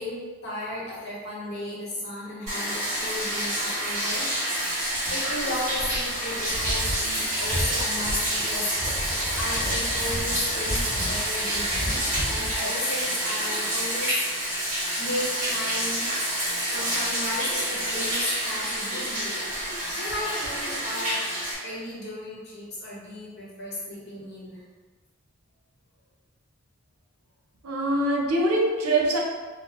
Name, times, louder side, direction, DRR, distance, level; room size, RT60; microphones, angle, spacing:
voice 1, 0.0-4.3 4.8-8.7 9.4-14.6 15.0-16.1 16.7-19.5 19.9-21.2 21.6-24.6, left 1 dB, 50° left, -6 dB, 0.9 m, -34 dB
Bathtub (filling or washing), 2.5-21.6, right 1 dB, 35° right, 1.4 m, -28 dB
sound 1, 6.1-12.6, equal, 25° left, 0.4 m, -33 dB
voice 2, 27.6-29.2, right 1 dB, 80° right, -1 dB, 0.6 m, -23 dB
3.8 x 2.0 x 2.9 m, 1.4 s
head